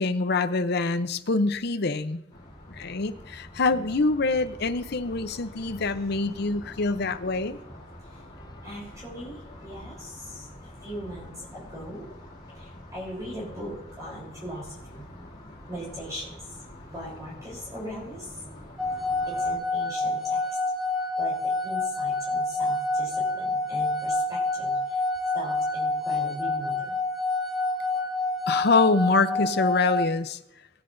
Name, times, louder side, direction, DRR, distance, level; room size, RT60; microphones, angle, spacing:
voice 1, 0.0-2.2 2.7-7.6 28.5-30.4, left 3 dB, 55° left, 11 dB, 0.7 m, -25 dB
sound 1, 2.3-19.6, left 1 dB, 25° left, 3.6 m, -46 dB
voice 2, 3.7-4.1 8.1-8.2 8.6-12.1 12.5-15.0 15.7-16.3 16.9-18.6 19.3-20.6 21.1-25.0 25.3-27.0 27.8-28.1, equal, 15° right, -5 dB, 3.8 m, -40 dB
sound 2, 18.8-30.1, left 2 dB, ahead, 0.9 m, -27 dB
20.0 x 9.8 x 2.7 m, 0.84 s
head